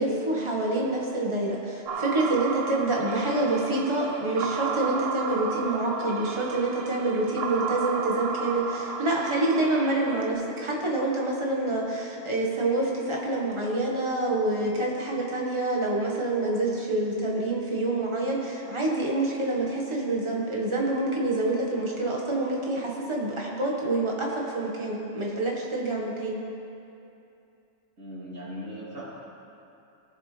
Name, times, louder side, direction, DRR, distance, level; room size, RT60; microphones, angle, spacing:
voice 1, 0.0-26.4, right 2 dB, 20° right, -3 dB, 1.6 m, -27 dB
sound 1, 1.9-10.3, right 5 dB, 55° right, 0.9 m, -33 dB
voice 2, 28.0-29.0, equal, 75° right, -9 dB, 3.5 m, -38 dB
18.5 x 7.5 x 3.4 m, 2.7 s
omnidirectional pair, 1.4 m